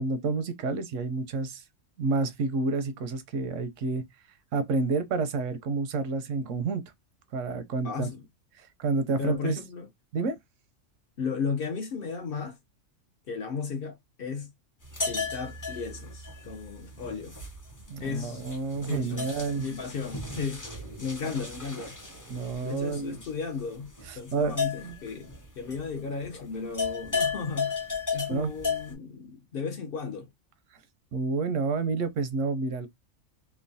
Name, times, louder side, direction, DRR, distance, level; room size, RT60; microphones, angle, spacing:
voice 1, 0.0-1.6 2.0-4.0 4.5-6.8 7.3-8.1 8.6-9.6 10.1-10.4 17.9-19.7 21.2-21.3 22.3-23.2 24.1-24.6 24.8-25.0 28.3-28.5 31.1-32.9, right 4 dB, 85° right, 1.0 m, -29 dB
voice 2, 7.8-8.2 9.2-9.9 11.2-12.6 13.3-14.5 15.1-17.4 18.0-18.4 18.9-19.3 19.6-20.6 21.0-22.0 22.6-30.3, left 5 dB, 60° left, 0.7 m, -35 dB
sound 1, 14.8-26.3 26.5-28.9, left 4 dB, 25° left, 0.4 m, -35 dB
3.0 x 2.2 x 2.6 m
omnidirectional pair, 1.3 m